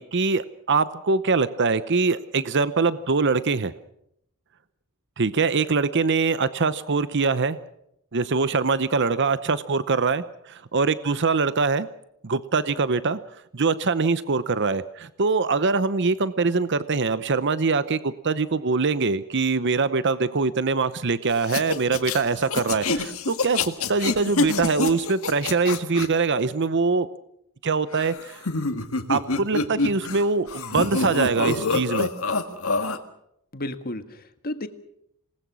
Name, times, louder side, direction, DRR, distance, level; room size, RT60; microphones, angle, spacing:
voice 1, 0.0-3.7 5.2-7.6 8.1-11.9 12.2-13.2 13.5-27.1 27.6-28.4 29.1-32.1, right 4 dB, 55° right, 14 dB, 0.8 m, -23 dB
sound 1, 21.4-26.1 27.9-30.2 30.5-33.0, left 3 dB, 70° left, 1.9 m, -26 dB
voice 2, 33.5-34.7, left 1 dB, 45° left, 9 dB, 1.7 m, -33 dB
27.0 x 19.5 x 6.3 m, 0.76 s
head